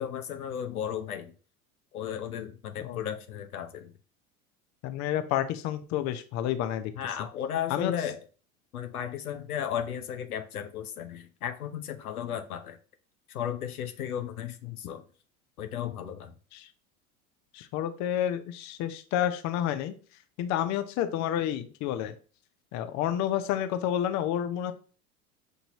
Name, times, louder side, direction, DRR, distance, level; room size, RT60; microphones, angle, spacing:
voice 1, 0.0-1.3 1.9-3.9 7.0-8.2 8.7-12.8 13.3-15.0 15.6-16.3, left 9 dB, 85° left, 7 dB, 0.7 m, -35 dB
voice 2, 4.8-6.9 7.7-7.9 16.5-16.7 17.5-19.9 20.4-22.1 22.7-24.7, left 11 dB, 40° left, 10 dB, 0.6 m, -29 dB
6.2 x 2.6 x 2.9 m, 0.39 s
hypercardioid pair, 80°, 43 cm